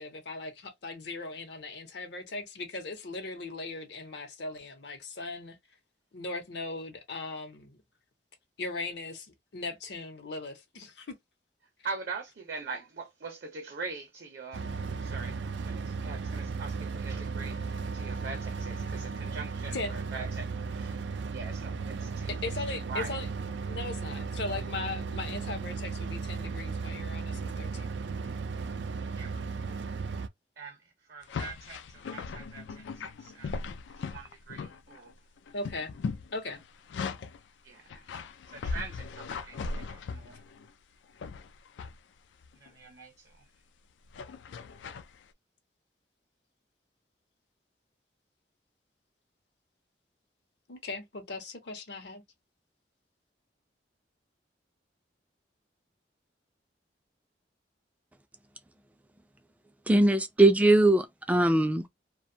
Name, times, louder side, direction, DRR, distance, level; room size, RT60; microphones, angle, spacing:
voice 1, 0.0-5.6 6.1-7.8 8.6-11.1 19.7-19.9 22.3-23.3 23.7-27.9 35.5-35.9 36.3-36.6 50.7-52.2, left 3 dB, 70° left, 0.7 m, -38 dB
voice 2, 11.8-22.4 22.7-23.2 29.1-29.4 30.6-35.1 37.6-38.1 38.4-40.4 42.5-43.5, right 4 dB, 55° right, 0.7 m, -43 dB
sound 1, 14.5-30.3, right 4 dB, 85° right, 0.4 m, -35 dB
sound 2, 31.2-35.1 35.4-37.4 37.9-40.7 41.2-42.0 42.4-42.7 44.1-45.1, left 4 dB, 85° left, 0.3 m, -38 dB
voice 3, 59.9-61.9, right 1 dB, 10° right, 0.3 m, -21 dB
2.5 x 2.2 x 2.6 m
head